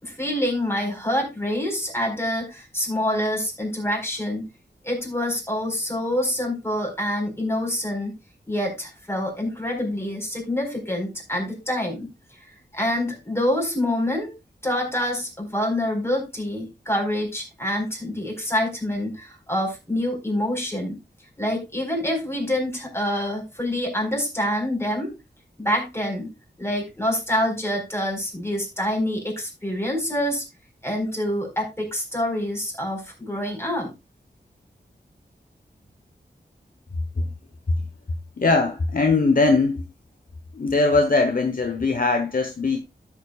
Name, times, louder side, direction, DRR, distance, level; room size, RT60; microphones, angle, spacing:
voice 1, 0.0-4.4 4.8-8.2 8.5-12.1 12.7-14.3 14.6-21.0 21.4-25.1 25.6-26.3 26.6-30.4 30.8-33.9, left 1 dB, 15° left, 4.4 m, -26 dB
voice 2, 38.4-39.8 40.5-42.8, left 3 dB, 50° left, 1.1 m, -20 dB
13.5 x 7.3 x 2.4 m
wide cardioid pair, 70°, 18 cm